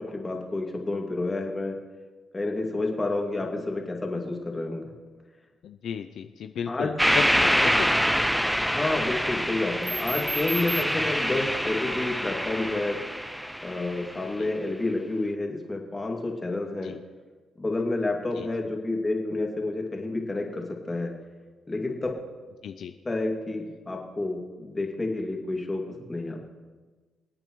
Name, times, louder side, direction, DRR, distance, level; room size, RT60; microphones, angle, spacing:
voice 1, 0.0-1.8 2.3-4.9 6.7-7.0 8.6-13.0 13.6-16.9 17.6-21.1 21.7-22.1 23.0-26.4, left 2 dB, 20° left, 0 dB, 2.3 m, -29 dB
voice 2, 5.6-7.7 14.4-14.5 16.8-17.0 18.4-18.5 22.6-22.9, left 8 dB, 65° left, 8 dB, 0.5 m, -34 dB
sound 1, 7.0-14.3, equal, ahead, 0.4 m, -26 dB
25.5 x 8.8 x 3.1 m, 1.3 s
cardioid pair, 90°, 0 cm